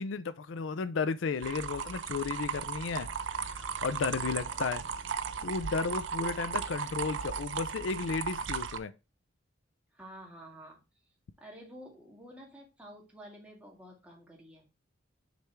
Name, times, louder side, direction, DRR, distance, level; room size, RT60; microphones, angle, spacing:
voice 1, 0.0-3.1 3.5-4.8 5.4-8.9, left 4 dB, 75° left, 0.5 m, -33 dB
sound 1, 1.4-8.8, right 6 dB, 70° right, 0.5 m, -36 dB
voice 2, 4.1-4.7 6.3-6.7 9.9-10.8 11.4-14.7, equal, 5° right, 1.9 m, -51 dB
6.6 x 3.4 x 4.5 m
head